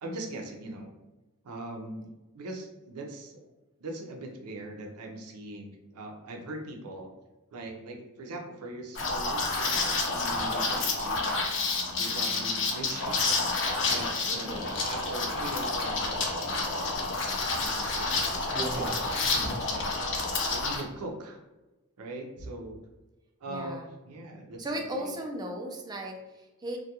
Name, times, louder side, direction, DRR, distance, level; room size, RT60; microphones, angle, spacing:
voice 1, 0.0-0.9 1.4-3.4 3.8-7.1 7.5-11.3 12.0-18.9 19.3-21.4 22.0-22.8 23.4-25.1, right 2 dB, 85° right, 2 dB, 0.5 m, -41 dB
Liquid, 9.0-20.8, left 3 dB, 55° left, 0.5 m, -29 dB
Bicycle, 9.4-19.5, right 1 dB, 35° right, 0.8 m, -44 dB
voice 2, 14.3-14.8 23.5-23.8 24.6-26.8, right 1 dB, 20° right, 2 dB, 0.3 m, -36 dB
2.3 x 2.2 x 2.8 m, 1.1 s
head